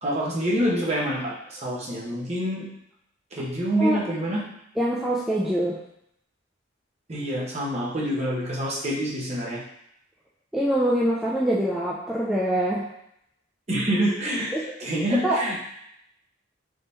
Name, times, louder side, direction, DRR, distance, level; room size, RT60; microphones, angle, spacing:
voice 1, 0.0-2.6 3.3-4.5 7.1-9.6 13.7-14.5 14.8-15.7, equal, 35° right, -4 dB, 0.9 m, -26 dB
voice 2, 4.8-5.8 10.5-12.9 14.5-14.6 15.2-15.4, right 1 dB, ahead, -6 dB, 0.3 m, -24 dB
3.6 x 2.9 x 4.0 m, 0.76 s
head